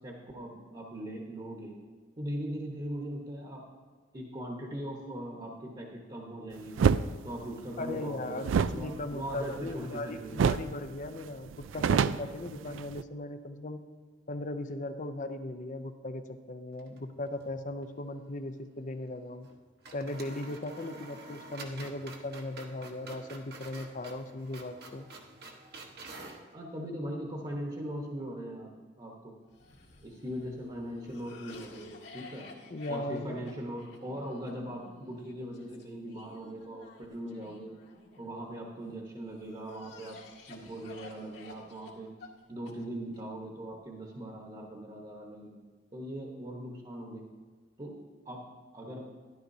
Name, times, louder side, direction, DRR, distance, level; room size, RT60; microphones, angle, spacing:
voice 1, 0.0-1.8 2.2-3.6 4.1-6.8 7.2-10.4 26.5-28.7 29.0-29.3 30.0-32.5 32.9-37.7 38.2-40.2 40.5-42.1 42.5-47.2 47.8-47.9 48.2-49.1, right 1 dB, 25° right, -1 dB, 1.1 m, -40 dB
sound 1, 6.8-7.1 8.4-10.0 10.4-10.7 11.0-11.1 11.5-13.0, right 6 dB, 80° right, 0.3 m, -27 dB
voice 2, 7.8-13.8 14.3-19.5 19.9-25.1 32.7-33.5, left 2 dB, 40° left, 9 dB, 0.6 m, -38 dB
sound 2, 16.7-17.6 17.8-17.9 19.4-19.6 19.8-26.5, right 2 dB, 55° right, 1.1 m, -48 dB
Cough, 29.5-38.7 39.3-43.2, left 3 dB, 65° left, 2.1 m, -52 dB
13.0 x 11.5 x 2.7 m, 1.5 s
head